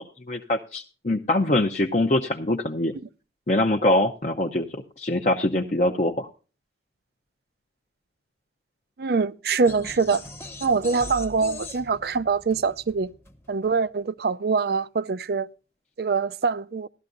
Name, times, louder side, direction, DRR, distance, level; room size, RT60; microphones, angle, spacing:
voice 1, 0.0-2.9 3.5-6.3, left 1 dB, 40° left, 0.7 m, -24 dB
voice 2, 9.0-10.2 10.6-13.1 13.5-15.5 16.0-16.9, right 4 dB, 60° right, 0.5 m, -24 dB
sound 1, 9.6-13.8, left 2 dB, 15° left, 0.9 m, -41 dB
16.5 x 12.5 x 2.6 m
head